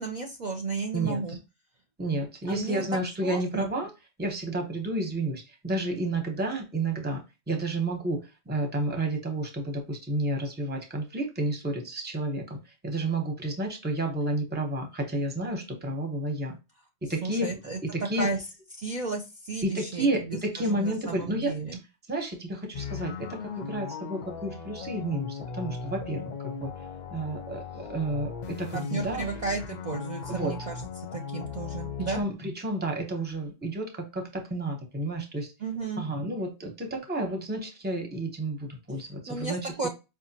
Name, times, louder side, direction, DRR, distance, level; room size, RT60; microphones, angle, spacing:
voice 1, 0.0-1.4 2.5-2.8 3.2-3.7 17.2-17.8 18.2-18.4 18.8-21.8 28.7-32.2 35.6-36.0 39.3-39.9, right 3 dB, 50° right, 0.6 m, -33 dB
voice 2, 2.0-3.9 4.2-7.2 7.5-8.2 8.5-12.6 12.8-16.5 17.1-17.5 17.8-18.3 19.6-21.5 22.1-23.3 23.5-26.7 27.1-29.3 30.3-30.5 32.1-35.5 36.0-39.7, right 1 dB, 10° right, 0.7 m, -31 dB
sound 1, 22.7-32.2, left 6 dB, 55° left, 0.5 m, -38 dB
4.9 x 2.3 x 2.7 m
omnidirectional pair, 1.1 m